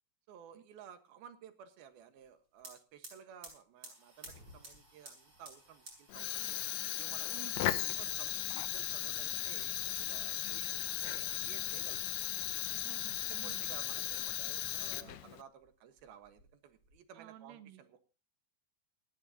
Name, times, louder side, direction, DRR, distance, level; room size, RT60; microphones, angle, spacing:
voice 1, 0.3-6.6 7.0-7.5 7.8-9.7 10.0-12.0 13.2-18.1, right 8 dB, 80° right, 3.3 m, -55 dB
sound 1, 2.2-2.3 2.5-14.5 14.9-15.7 16.0-17.0, right 1 dB, 25° right, 7.4 m, -58 dB
Fire, 6.1-15.4, left 13 dB, 80° left, 1.5 m, -37 dB
voice 2, 7.3-7.8 12.8-13.6 17.1-17.8, right 11 dB, 55° right, 2.3 m, -53 dB
28.5 x 11.5 x 2.8 m
omnidirectional pair, 4.3 m